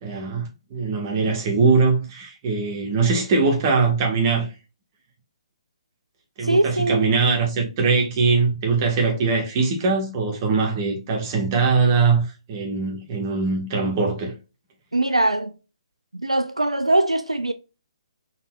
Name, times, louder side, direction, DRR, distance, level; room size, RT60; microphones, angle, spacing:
voice 1, 0.0-4.5 6.4-14.3, right 4 dB, 30° right, 1.3 m, -21 dB
voice 2, 6.4-7.1 14.9-15.5 16.1-17.5, right 2 dB, 85° right, 0.4 m, -21 dB
4.1 x 3.9 x 2.4 m
figure-of-eight pair, 130°, 3 cm